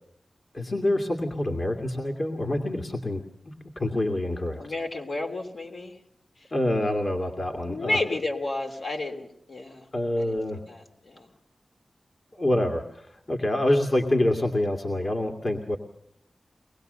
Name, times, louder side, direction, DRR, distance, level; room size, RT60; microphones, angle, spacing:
voice 1, 0.5-4.6 6.5-8.0 9.9-10.6 12.4-15.8, left 1 dB, 50° left, 3 dB, 2.3 m, -26 dB
voice 2, 4.6-6.0 7.7-9.9 10.2-11.3 13.7-13.8, left 2 dB, 70° left, 3 dB, 3.3 m, -32 dB
23.5 x 20.0 x 6.8 m, 0.69 s
wide cardioid pair, 70°, 0 cm